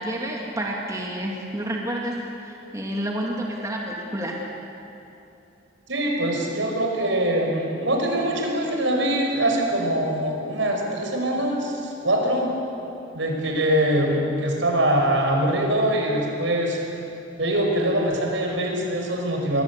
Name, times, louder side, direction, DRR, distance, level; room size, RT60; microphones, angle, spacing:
voice 1, 0.0-4.4, right 1 dB, 15° right, -1 dB, 2.5 m, -29 dB
voice 2, 5.9-12.5 13.1-16.8 17.4-19.6, right 1 dB, 75° right, 1 dB, 5.2 m, -23 dB
27.0 x 22.5 x 8.3 m, 2.8 s
head